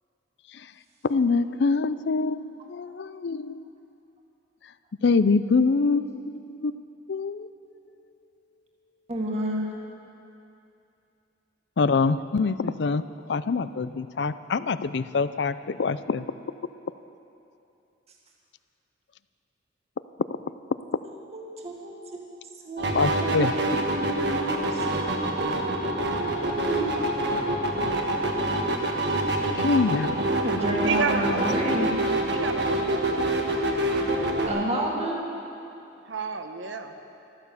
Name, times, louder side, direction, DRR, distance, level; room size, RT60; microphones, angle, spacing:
voice 1, 1.1-3.6 5.0-6.1 6.6-6.7 7.1-7.5 11.8-13.0 13.3-16.3 22.9-23.5 29.5-30.2, left 4 dB, 65° left, 14 dB, 0.5 m, -24 dB
voice 2, 9.1-9.7 21.0-22.2 22.6-27.1 30.3-31.9 34.4-35.2, equal, 35° right, -2 dB, 1.9 m, -31 dB
sound 1, 22.8-34.5, right 1 dB, 65° right, 1.6 m, -26 dB
voice 3, 30.8-31.6 32.3-33.3 36.0-37.0, right 4 dB, 85° right, 7 dB, 1.1 m, -31 dB
14.0 x 13.5 x 7.0 m, 2.7 s
head